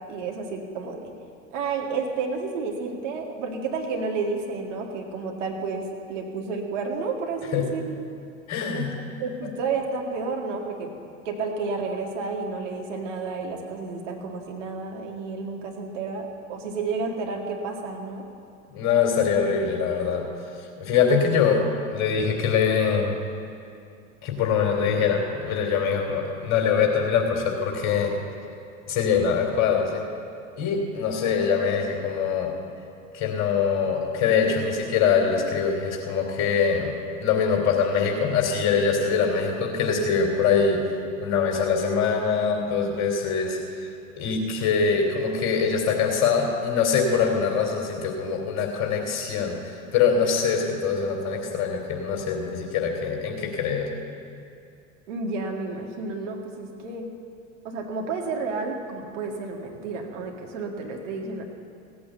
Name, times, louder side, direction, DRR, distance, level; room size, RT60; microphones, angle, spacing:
voice 1, 0.1-1.1 1.5-7.9 8.7-8.9 9.2-10.9 11.3-18.2 55.1-57.1 57.6-61.4, right 4 dB, 60° right, 1 dB, 2.1 m, -31 dB
voice 2, 8.5-9.0 18.7-20.3 20.8-21.6 21.9-23.2 24.2-28.1 28.9-30.0 30.6-32.5 33.1-36.9 37.2-40.8 41.2-43.6 44.2-53.9, left 6 dB, 40° left, 2 dB, 3.1 m, -23 dB
16.5 x 8.6 x 7.9 m, 2.4 s
figure-of-eight pair, 75°, 41 cm